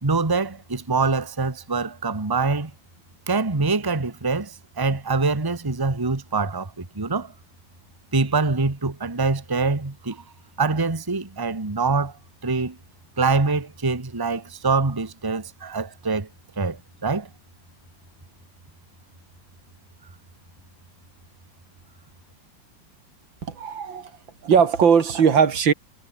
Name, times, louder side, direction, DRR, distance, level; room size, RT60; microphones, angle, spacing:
voice 1, 0.0-2.7 3.3-7.3 8.1-10.2 10.6-12.1 12.4-12.8 13.2-16.3 16.6-17.3, right 4 dB, 10° right, 1.4 m, -24 dB
voice 2, 23.5-24.2 24.4-25.7, right 7 dB, 75° right, 2.7 m, -19 dB
omnidirectional pair, 2.1 m